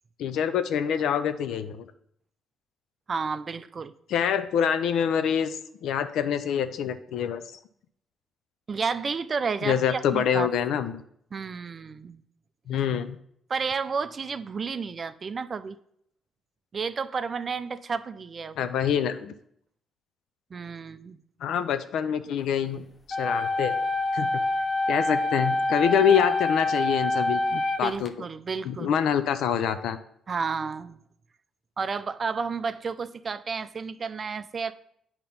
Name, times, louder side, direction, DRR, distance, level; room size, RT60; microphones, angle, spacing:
voice 1, 0.2-1.9 4.1-7.4 9.6-11.0 12.7-13.2 18.6-19.3 21.4-22.9 23.2-23.8 24.1-24.4 24.9-28.1 28.6-30.0, left 8 dB, 80° left, 11 dB, 0.5 m, -26 dB
voice 2, 3.1-3.9 8.7-10.5 11.3-12.2 13.5-15.8 16.7-18.6 20.5-21.2 27.8-28.9 30.3-31.0 31.8-34.7, right 5 dB, 40° right, 13 dB, 0.4 m, -31 dB
sound 1, 23.1-28.1, left 2 dB, 25° left, 0.6 m, -26 dB
8.5 x 2.9 x 5.3 m, 0.69 s
cardioid pair, 90°, 0 cm